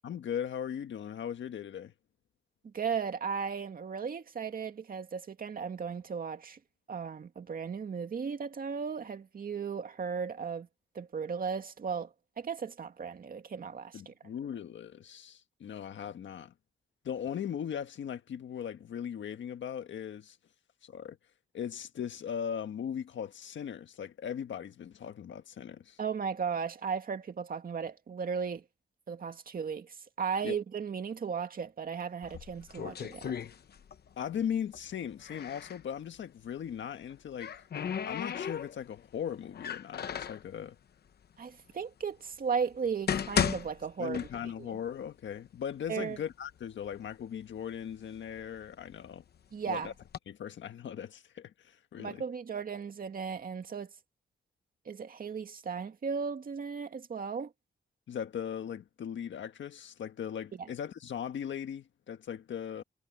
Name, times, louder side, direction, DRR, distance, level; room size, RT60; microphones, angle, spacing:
voice 1, 0.0-1.9 13.9-16.5 17.0-20.4 20.8-21.2 21.5-26.0 30.4-30.6 34.2-37.6 38.0-40.8 44.0-49.2 49.6-49.9 50.3-52.2 58.1-62.8, left 8 dB, 90° left, 1.5 m, -38 dB
voice 2, 2.6-6.6 6.9-10.7 10.9-14.1 26.0-28.6 29.1-33.3 41.4-44.2 45.9-46.2 49.5-49.9 52.0-53.9 54.9-57.5, right 6 dB, 50° right, 2.2 m, -36 dB
sound 1, 32.2-34.1 34.4-35.8 36.9-39.0 39.5-40.5 41.2-41.3 42.0-42.1 42.7-44.7 45.0-45.1 45.9-46.0 46.3-47.0 47.5-49.2 49.8-50.2, left 8 dB, 60° left, 0.9 m, -35 dB
wide cardioid pair, 140°, 19 cm